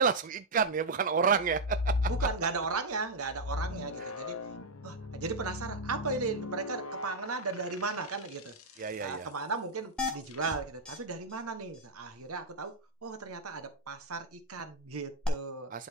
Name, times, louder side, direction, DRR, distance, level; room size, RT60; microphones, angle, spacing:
voice 1, 0.0-2.1 8.8-9.3 15.7-15.9, right 6 dB, 35° right, 0.3 m, -29 dB
sound 1, 1.4-2.8 3.3-8.8 10.3-10.6, left 3 dB, 80° left, 1.0 m, -36 dB
voice 2, 2.1-4.4 4.8-8.5 9.0-12.7 13.0-15.7, right 4 dB, 85° right, 1.4 m, -36 dB
sound 2, 10.0-10.5 10.9-11.0 11.3-11.4 11.7-11.9 15.2-15.3, left 3 dB, 5° left, 1.5 m, -35 dB
11.5 x 4.0 x 3.7 m
head